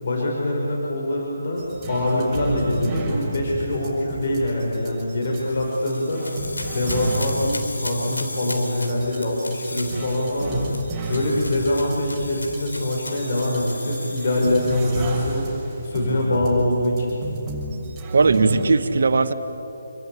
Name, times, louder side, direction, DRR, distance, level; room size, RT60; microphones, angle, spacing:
voice 1, 0.0-6.2 6.7-10.6 11.1-17.2, left 1 dB, 50° left, -2 dB, 5.5 m, -24 dB
sound 1, 1.6-18.7, right 1 dB, 10° right, 7.0 m, -33 dB
sound 2, 5.3-15.3, left 2 dB, 85° left, 3.5 m, -36 dB
voice 2, 18.1-19.3, right 4 dB, 60° right, 9 dB, 1.8 m, -18 dB
28.0 x 24.0 x 8.8 m, 3.0 s
figure-of-eight pair, 150°, 0 cm